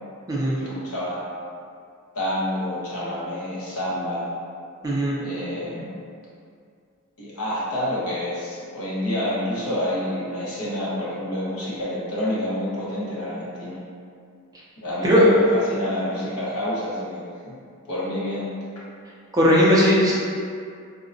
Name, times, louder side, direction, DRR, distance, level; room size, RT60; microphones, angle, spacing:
voice 1, 0.6-1.3 2.1-4.2 5.2-5.9 7.2-13.8 14.8-17.6 17.9-18.5, left 1 dB, 75° left, -8 dB, 0.9 m, -28 dB
voice 2, 4.8-5.1 15.0-15.3 19.3-20.1, equal, 15° right, -6 dB, 0.4 m, -17 dB
3.6 x 2.1 x 2.5 m, 2.3 s
head